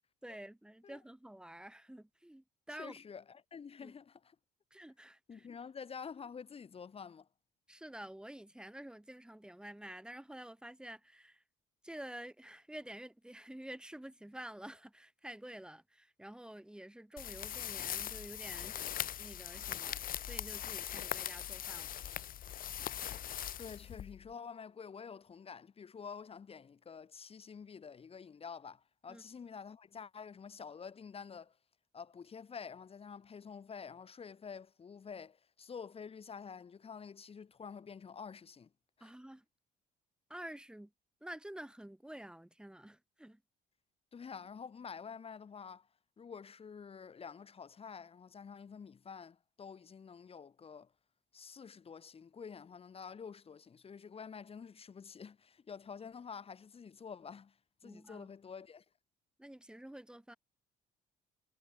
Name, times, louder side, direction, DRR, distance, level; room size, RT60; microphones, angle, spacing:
voice 1, 0.2-3.0 3.8-3.9 4.7-5.5 7.7-11.4 11.8-18.9 19.2-20.0 20.3-21.9 29.1-29.2 39.0-39.4 40.3-40.9 41.2-43.4 57.8-58.3 59.4-60.4, right 1 dB, 5° right, 5.0 m, -49 dB
voice 2, 2.8-4.4 5.3-7.3 23.6-31.6 31.9-38.7 39.0-39.1 44.1-45.9 46.2-50.9 51.3-58.8, left 6 dB, 35° left, 4.5 m, -49 dB
sound 1, 17.2-24.3, left 10 dB, 55° left, 4.0 m, -41 dB
cardioid pair, 110°, 17 cm